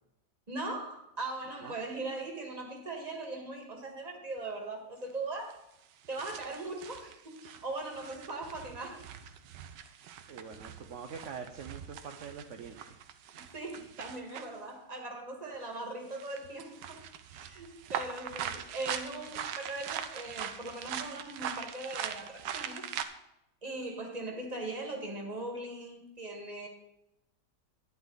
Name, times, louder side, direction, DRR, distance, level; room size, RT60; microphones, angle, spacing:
voice 1, 0.5-5.5 6.1-9.0 13.3-17.0 17.3-22.9 23.6-26.7, right 2 dB, 25° right, 2 dB, 1.7 m, -40 dB
sound 1, 4.5-4.6 5.5-5.6 6.0-14.6 15.6-15.8 16.1-23.0, right 9 dB, 85° right, 1.4 m, -42 dB
voice 2, 10.3-13.0, right 6 dB, 55° right, 4 dB, 1.0 m, -44 dB
11.0 x 9.6 x 4.0 m, 0.86 s
omnidirectional pair, 1.9 m